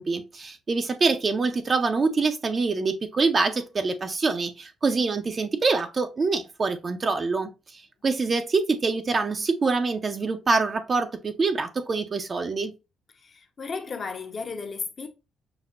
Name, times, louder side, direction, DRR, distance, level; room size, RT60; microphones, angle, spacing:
voice 1, 0.0-12.7, right 4 dB, 35° right, 0.6 m, -25 dB
voice 2, 13.2-15.1, left 5 dB, 45° left, 0.8 m, -34 dB
5.9 x 2.2 x 2.5 m
cardioid pair, 90°, 0 cm